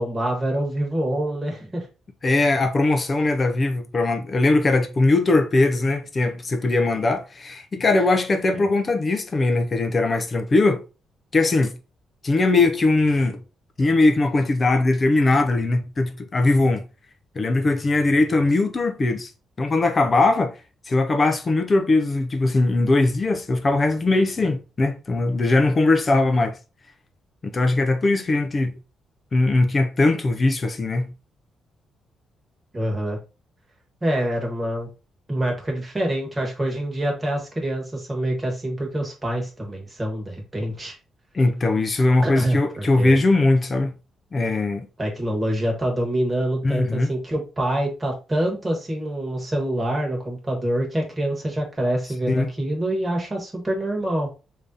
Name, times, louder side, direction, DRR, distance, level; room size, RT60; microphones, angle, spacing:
voice 1, 0.0-1.9 8.5-8.7 32.7-33.2 34.0-34.9 35.3-41.0 42.2-43.2 45.0-54.3, right 1 dB, 15° right, 1.3 m, -26 dB
voice 2, 2.2-10.8 11.3-11.7 12.2-13.4 13.8-16.8 17.4-19.3 19.6-20.5 20.9-26.6 27.4-28.7 29.3-31.1 41.3-43.9 44.3-44.9 46.6-47.1 52.3-52.5, left 2 dB, 25° left, 0.5 m, -20 dB
3.4 x 2.7 x 3.7 m
cardioid pair, 155°, 0 cm